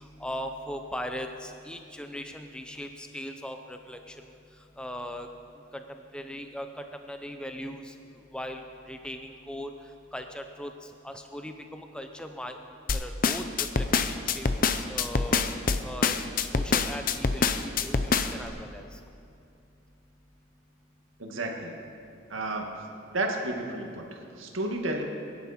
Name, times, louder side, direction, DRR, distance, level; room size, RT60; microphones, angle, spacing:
voice 1, 0.2-4.1 4.8-5.3 5.7-6.7 7.1-7.9 8.3-9.7 10.1-10.7 11.0-12.6 12.9-15.4 15.8-18.9, equal, 5° left, 5 dB, 0.6 m, -39 dB
sound 1, 12.9-18.5, left 5 dB, 45° left, 0.6 m, -25 dB
voice 2, 21.2-21.8 22.3-22.8 23.1-25.1, right 2 dB, 90° right, 1 dB, 1.9 m, -32 dB
22.5 x 11.0 x 4.3 m, 2.6 s
head